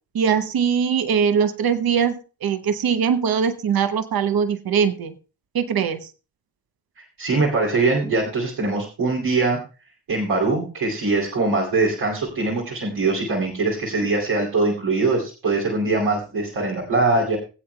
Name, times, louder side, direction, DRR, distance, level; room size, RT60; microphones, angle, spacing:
voice 1, 0.1-5.1 5.5-6.1, right 7 dB, 60° right, 10 dB, 0.9 m, -21 dB
voice 2, 7.0-9.6 10.1-17.4, right 3 dB, 80° right, -5 dB, 2.8 m, -22 dB
21.5 x 7.9 x 2.2 m, 0.34 s
supercardioid pair, 45°, 40 cm